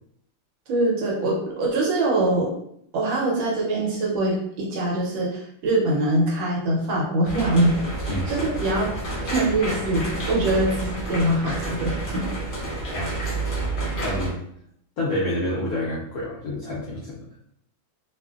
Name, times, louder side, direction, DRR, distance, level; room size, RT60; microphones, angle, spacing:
voice 1, 0.7-2.5 2.9-7.8 8.0-8.9 9.3-12.2, right 1 dB, 75° right, -3 dB, 1.4 m, -23 dB
sound 1, 7.3-14.3, right 2 dB, 45° left, 0.6 m, -29 dB
voice 2, 14.0-14.4 15.0-17.3, left 1 dB, 90° left, -6 dB, 0.8 m, -28 dB
3.0 x 2.4 x 2.3 m, 0.71 s
omnidirectional pair, 2.2 m